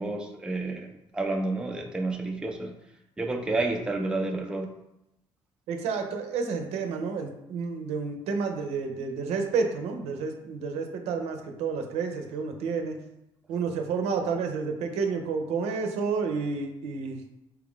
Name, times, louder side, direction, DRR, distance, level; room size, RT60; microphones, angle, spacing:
voice 1, 0.0-2.7 3.2-4.7, right 2 dB, 10° right, 2 dB, 0.4 m, -30 dB
voice 2, 5.7-13.0 13.5-17.2, right 5 dB, 85° right, 5 dB, 0.6 m, -30 dB
4.5 x 2.4 x 3.6 m, 0.85 s
cardioid pair, 135°, 10 cm